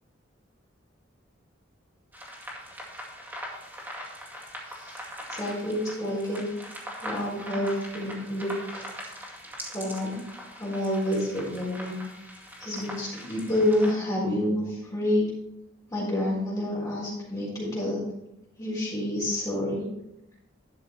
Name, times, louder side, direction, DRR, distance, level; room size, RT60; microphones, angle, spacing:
sound 1, 2.1-13.9, equal, 10° right, 2.1 m, -41 dB
voice 1, 5.3-6.5 7.0-8.9 9.7-10.2 10.6-12.0 12.6-15.3 15.9-18.0 18.6-19.8, left 1 dB, 20° left, -6 dB, 4.0 m, -28 dB
12.0 x 6.1 x 4.4 m, 0.83 s
head